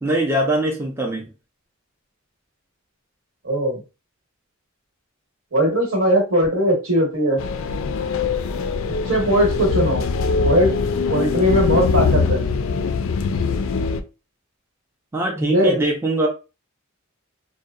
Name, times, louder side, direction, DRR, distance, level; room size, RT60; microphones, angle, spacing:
voice 1, 0.0-1.3 15.1-16.3, right 1 dB, 10° right, 0 dB, 0.4 m, -22 dB
voice 2, 3.4-3.8 5.5-7.4 9.1-10.0 10.4-10.7 11.1-12.5 15.4-15.8, equal, 75° right, -1 dB, 1.2 m, -19 dB
sound 1, 7.4-14.0, left 5 dB, 65° left, 0.3 m, -22 dB
2.6 x 2.0 x 2.4 m, 0.31 s
head